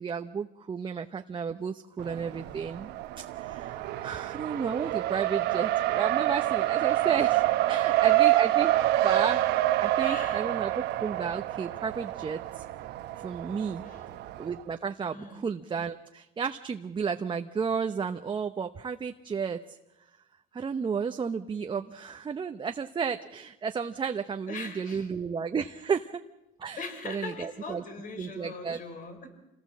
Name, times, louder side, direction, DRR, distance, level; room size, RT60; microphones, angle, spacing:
voice 1, 0.0-2.9 3.2-8.7 9.0-9.4 9.8-12.6 13.2-13.9 14.4-19.8 20.5-26.2 26.6-27.8 28.2-28.8, right 6 dB, 30° right, 6 dB, 0.9 m, -33 dB
Race car auto racing, 2.0-14.6, right 15 dB, 85° right, 1.2 m, -27 dB
voice 2, 7.7-8.1 10.0-10.5 13.8-14.2 15.1-15.5 24.5-25.1 26.8-29.3, left 4 dB, 55° left, 6 dB, 5.0 m, -41 dB
27.5 x 18.0 x 7.5 m, 0.96 s
cardioid pair, 110°, 17 cm